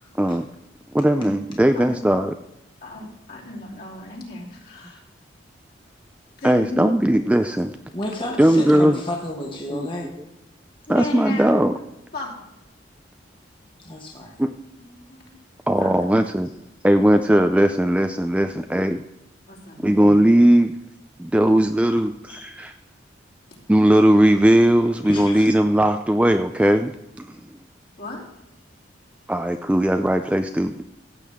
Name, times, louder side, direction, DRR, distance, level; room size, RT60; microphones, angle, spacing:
voice 1, 0.9-2.3 6.4-7.8 8.4-9.0 9.7-10.1 10.9-11.7 14.4-14.5 15.7-16.5 16.8-19.0 19.8-20.8 21.2-22.7 23.7-26.9 27.2-27.5 29.3-30.8, right 1 dB, 5° right, 7 dB, 0.3 m, -18 dB
voice 2, 2.8-5.0 6.4-6.9 10.9-11.5 12.1-12.5 14.7-15.4 15.8-15.9 19.5-19.8 28.0-28.2, left 2 dB, 50° left, -4 dB, 3.0 m, -35 dB
voice 3, 7.9-10.1 13.8-14.4 22.3-22.6 25.1-25.5, left 1 dB, 25° left, -1 dB, 1.3 m, -31 dB
15.0 x 8.2 x 3.6 m, 0.88 s
head